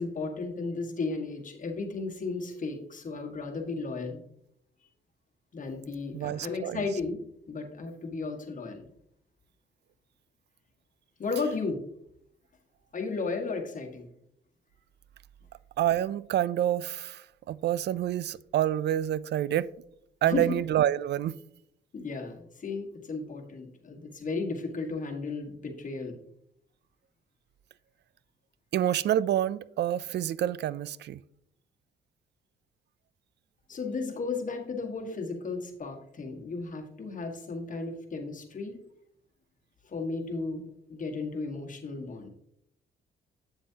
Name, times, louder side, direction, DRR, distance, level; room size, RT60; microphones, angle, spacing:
voice 1, 0.0-4.2 5.5-7.2 7.5-8.9 11.2-11.8 12.9-14.1 20.2-20.6 21.9-26.2 33.7-38.8 39.8-42.3, left 4 dB, 40° left, 1.6 m, -34 dB
voice 2, 6.1-6.8 15.8-19.7 20.2-21.4 28.7-31.2, right 11 dB, 60° right, 0.4 m, -28 dB
8.4 x 7.5 x 2.8 m
cardioid pair, 90°, 20 cm